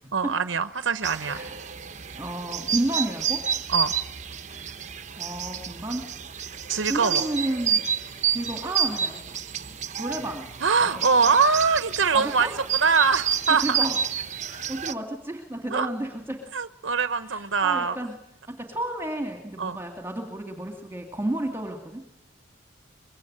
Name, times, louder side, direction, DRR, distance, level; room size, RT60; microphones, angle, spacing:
voice 1, 0.1-1.4 3.7-3.9 6.7-7.2 10.6-13.8 15.7-15.9 16.5-18.0 19.6-19.8, right 5 dB, 75° right, 12 dB, 0.9 m, -23 dB
sound 1, 1.0-14.9, right 8 dB, 40° right, 1.0 m, -30 dB
voice 2, 1.2-1.6 2.1-3.4 5.2-6.1 6.9-7.9 8.3-9.4 10.0-10.5 10.8-10.9 12.1-12.5 13.5-14.0 14.5-16.5 17.3-18.1 18.5-22.0, right 1 dB, 10° right, 4 dB, 2.5 m, -32 dB
25.0 x 22.5 x 8.8 m, 0.78 s
head